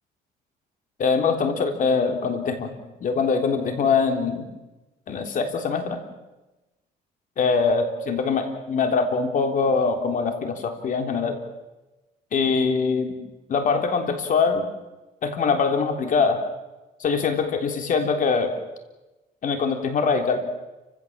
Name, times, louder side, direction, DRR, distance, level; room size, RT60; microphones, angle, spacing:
voice 1, 1.0-2.8 3.0-4.5 5.1-6.0 7.4-11.4 12.3-13.1 13.5-14.6 15.2-16.4 17.0-18.5 19.4-20.4, left 5 dB, 50° left, 5 dB, 3.6 m, -23 dB
29.5 x 16.5 x 7.5 m, 1.1 s
cardioid pair, 110°, 17 cm